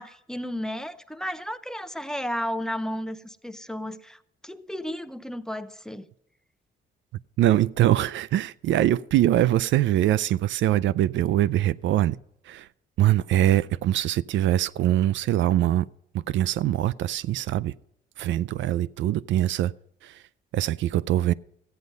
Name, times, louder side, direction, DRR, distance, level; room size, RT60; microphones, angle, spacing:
voice 1, 0.0-6.1, equal, 5° left, 0.7 m, -33 dB
voice 2, 7.4-12.2 12.5-12.7 13.0-15.8 16.3-17.7 18.2-19.7 20.0-20.1 20.5-21.3, right 13 dB, 70° right, 0.4 m, -23 dB
14.0 x 9.4 x 5.4 m
cardioid pair, 90°, 20 cm